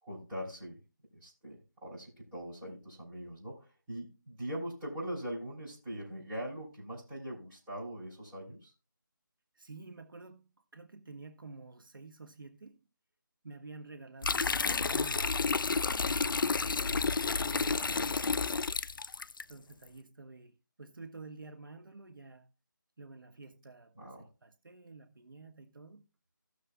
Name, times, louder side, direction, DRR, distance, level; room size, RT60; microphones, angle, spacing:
voice 1, 0.0-0.8 1.1-8.7 17.8-18.2 24.0-24.3, equal, 10° right, 3.5 m, -42 dB
voice 2, 9.5-12.8 13.4-15.7 16.1-18.5 19.5-22.5 23.0-26.1, right 3 dB, 80° right, 1.2 m, -51 dB
sound 1, 14.2-19.4, left 4 dB, 75° left, 0.4 m, -30 dB
16.5 x 6.6 x 2.3 m
figure-of-eight pair, 170°, 11 cm